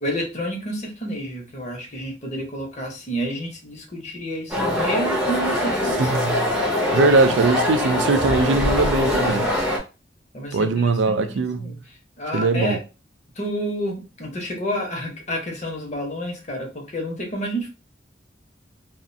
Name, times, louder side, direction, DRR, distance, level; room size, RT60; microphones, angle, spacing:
voice 1, 0.0-6.4 7.3-7.4 10.3-12.8 13.3-17.7, equal, 40° left, 0.8 m, -30 dB
sound 1, 4.5-9.8, left 1 dB, 10° right, 0.6 m, -23 dB
voice 2, 6.0-6.5 6.9-9.5 10.5-11.7 12.3-12.8, right 3 dB, 85° right, 0.4 m, -20 dB
2.4 x 2.1 x 2.6 m
head